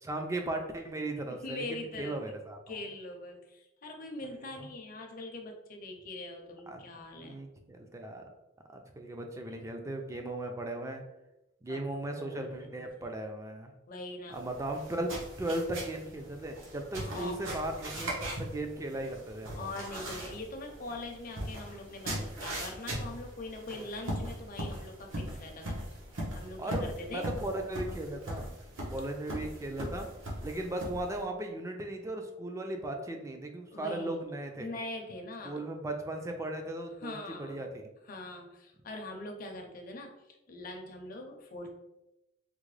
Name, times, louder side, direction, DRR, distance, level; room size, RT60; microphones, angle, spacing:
voice 1, 0.0-2.8 4.6-4.7 6.7-6.8 7.2-8.2 8.7-11.0 11.6-13.7 14.3-15.1 15.4-18.1 18.4-19.6 23.7-23.9 26.6-28.5 28.9-30.1 30.4-34.7 35.4-37.9, right 1 dB, 15° right, 3 dB, 0.3 m, -37 dB
voice 2, 1.4-2.3 2.7-7.4 9.5-9.6 11.7-13.1 13.9-14.4 17.0-17.4 19.5-25.8 26.3-27.2 33.7-34.2 34.6-35.6 37.0-37.6 38.0-40.1 40.5-41.7, left 2 dB, 45° left, 2 dB, 0.6 m, -42 dB
sound 1, 14.3-31.2, right 1 dB, 80° right, 1.0 m, -40 dB
3.6 x 2.1 x 3.1 m, 0.93 s
head